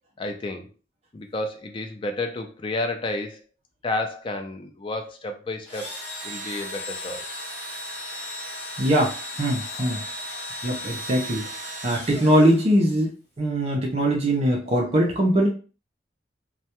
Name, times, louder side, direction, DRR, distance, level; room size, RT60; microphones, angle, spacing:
voice 1, 0.2-0.7 1.1-3.4 3.8-5.9 6.2-7.4 9.8-10.4, left 2 dB, 30° left, 4 dB, 0.3 m, -31 dB
Engine / Drill, 5.7-13.0, equal, 10° left, 1.1 m, -35 dB
voice 2, 8.8-10.0 10.6-11.5 11.8-13.1 13.4-15.5, right 1 dB, 35° right, -1 dB, 0.5 m, -21 dB
2.2 x 2.1 x 2.8 m, 0.36 s
head